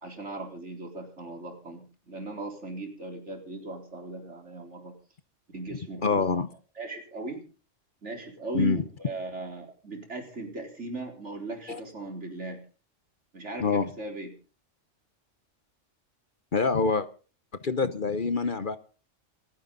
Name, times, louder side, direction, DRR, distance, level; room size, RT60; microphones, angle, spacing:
voice 1, 0.0-4.9 5.5-6.2 6.8-7.4 8.0-12.6 13.3-14.3, right 3 dB, 65° right, 3 dB, 4.4 m, -38 dB
voice 2, 6.0-6.5 8.5-8.8 11.7-11.8 13.6-13.9 16.5-17.1 17.6-18.8, left 4 dB, 45° left, 13 dB, 1.0 m, -25 dB
28.0 x 9.6 x 3.9 m, 0.37 s
omnidirectional pair, 1.3 m